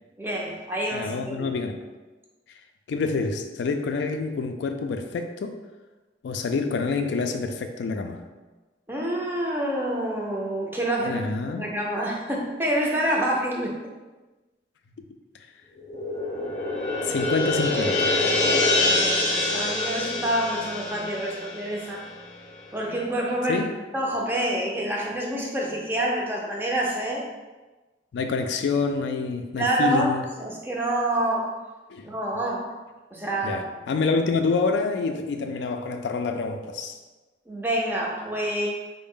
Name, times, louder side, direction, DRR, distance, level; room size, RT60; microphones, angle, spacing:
voice 1, 0.2-1.5 8.9-11.2 11.6-13.8 18.8-22.0 22.7-23.7 23.9-27.3 29.6-31.5 32.0-32.7 33.1-33.7 37.5-38.7, right 1 dB, 10° right, -2 dB, 0.5 m, -27 dB
voice 2, 0.9-1.8 2.9-5.6 6.2-8.2 11.0-11.7 17.0-18.2 23.5-23.7 28.1-30.2 31.9-32.1 33.4-37.0, left 4 dB, 80° left, 6 dB, 0.3 m, -27 dB
sound 1, 15.8-22.4, left 2 dB, 35° left, 0.6 m, -25 dB
4.0 x 2.0 x 3.6 m, 1.2 s
head